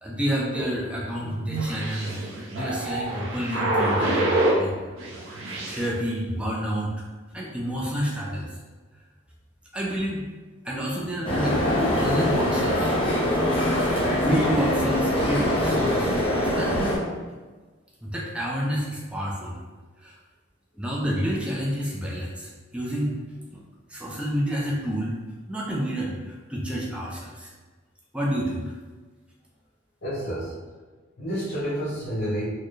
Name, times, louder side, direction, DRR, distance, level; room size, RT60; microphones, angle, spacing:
voice 1, 0.0-2.2 2.5-4.7 5.7-7.1 7.3-8.6 9.7-10.2 10.6-12.9 14.2-16.2 16.5-16.9 17.3-17.4 18.0-19.6 20.0-20.2 20.8-23.2 23.5-23.6 23.9-25.2 25.5-27.5 28.1-28.6, equal, 5° right, -5 dB, 0.5 m, -29 dB
sound 1, 0.5-4.7 5.0-5.9, right 1 dB, 75° right, 0.7 m, -27 dB
sound 2, 11.2-17.0, left 1 dB, 25° left, 0.9 m, -23 dB
voice 2, 30.0-30.5 31.2-32.4, equal, 50° left, -11 dB, 1.1 m, -29 dB
4.2 x 2.1 x 3.2 m, 1.3 s
head